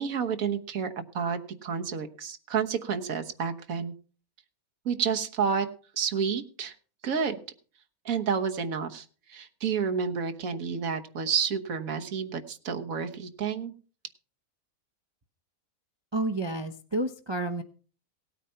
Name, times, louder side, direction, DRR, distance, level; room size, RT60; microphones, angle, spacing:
voice 1, 0.0-3.9 4.8-5.7 6.0-6.7 7.0-7.4 8.0-13.7, right 6 dB, 70° right, 6 dB, 1.6 m, -30 dB
voice 2, 16.1-17.6, right 2 dB, 25° right, 7 dB, 0.6 m, -30 dB
17.5 x 9.0 x 5.6 m, 0.40 s
omnidirectional pair, 1.5 m